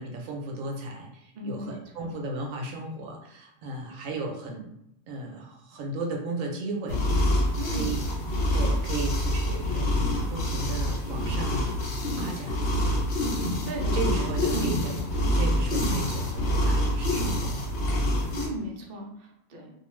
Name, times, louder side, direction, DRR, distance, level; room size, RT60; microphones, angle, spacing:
voice 1, 0.0-4.7 5.1-7.0 7.7-8.1 8.5-10.0 10.3-11.8 12.1-12.6 13.9-15.0 15.3-17.6, right 2 dB, 75° right, 1 dB, 1.0 m, -35 dB
voice 2, 1.3-2.1 7.6-8.0 13.4-14.2 18.3-19.7, equal, 55° right, -1 dB, 0.5 m, -37 dB
sound 1, 6.9-18.5, left 1 dB, 60° left, 0.9 m, -26 dB
2.3 x 2.3 x 3.0 m, 0.79 s
omnidirectional pair, 1.4 m